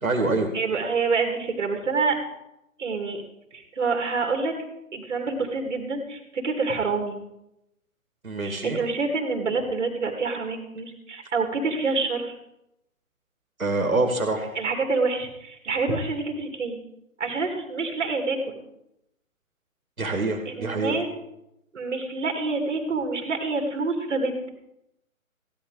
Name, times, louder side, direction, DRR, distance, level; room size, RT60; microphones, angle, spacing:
voice 1, 0.0-0.5 8.2-8.8 13.6-14.5 20.0-21.0, right 2 dB, 80° right, 3 dB, 2.4 m, -25 dB
voice 2, 0.5-2.2 2.8-3.2 3.5-4.5 4.9-7.2 8.4-12.3 14.5-16.8 17.2-18.4 20.0-20.1 20.5-21.1 21.7-24.5, right 4 dB, 55° right, 4 dB, 2.5 m, -27 dB
15.5 x 11.0 x 4.9 m, 0.85 s
figure-of-eight pair, 130°, 41 cm